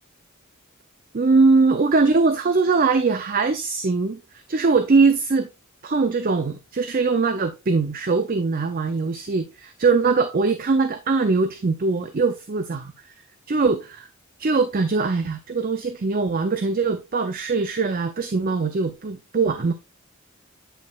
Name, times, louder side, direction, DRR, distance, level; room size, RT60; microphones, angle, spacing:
voice 1, 1.1-4.2 4.5-5.5 5.8-12.9 13.5-14.1 14.4-19.7, right 4 dB, 45° right, 0.5 m, -21 dB
8.8 x 5.2 x 2.4 m
head